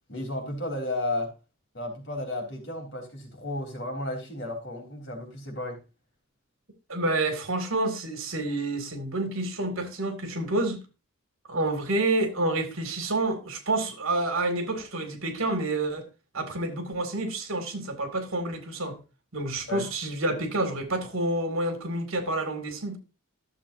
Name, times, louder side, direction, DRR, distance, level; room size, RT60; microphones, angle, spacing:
voice 1, 0.1-1.3 1.7-5.8 19.7-19.9, left 1 dB, 55° left, 3.8 m, -33 dB
voice 2, 6.9-10.8 11.5-16.0 16.3-19.0 19.3-23.0, right 2 dB, 75° right, 2.4 m, -28 dB
13.5 x 7.4 x 2.7 m
head